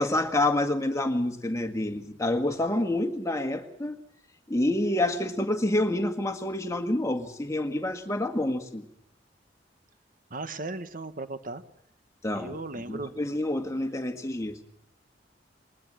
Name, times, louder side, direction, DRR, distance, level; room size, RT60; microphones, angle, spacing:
voice 1, 0.0-4.0 4.5-8.9 12.2-12.6 12.9-14.6, left 1 dB, 15° left, 6 dB, 1.8 m, -28 dB
voice 2, 10.3-11.6 12.3-13.1, right 2 dB, 45° right, 11 dB, 1.4 m, -36 dB
21.5 x 19.5 x 7.6 m, 0.70 s
head